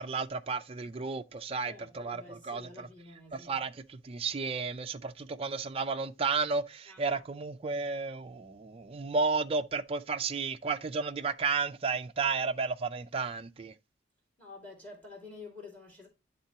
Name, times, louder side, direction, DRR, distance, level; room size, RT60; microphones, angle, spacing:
voice 1, 0.0-2.9 3.5-3.7 4.0-13.7, right 4 dB, 35° right, 0.4 m, -32 dB
voice 2, 1.6-3.7 6.9-7.2 14.4-16.1, left 3 dB, 10° left, 2.2 m, -49 dB
11.0 x 3.7 x 2.8 m
head